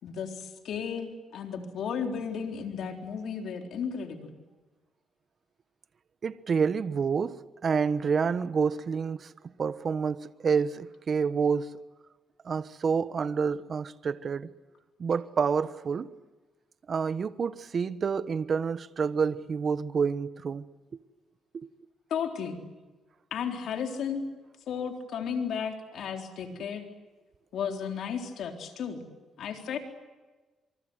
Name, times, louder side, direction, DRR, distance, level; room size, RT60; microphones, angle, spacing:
voice 1, 0.0-4.3 22.1-22.6 23.3-24.2 24.7-26.9 27.5-29.0 29.4-29.8, left 7 dB, 70° left, 3.9 m, -34 dB
voice 2, 6.2-11.7 12.4-14.5 15.0-16.1 16.9-20.7 20.9-21.0 21.5-21.7, right 6 dB, 45° right, 1.1 m, -28 dB
26.5 x 24.5 x 8.0 m
cardioid pair, 90°, 0 cm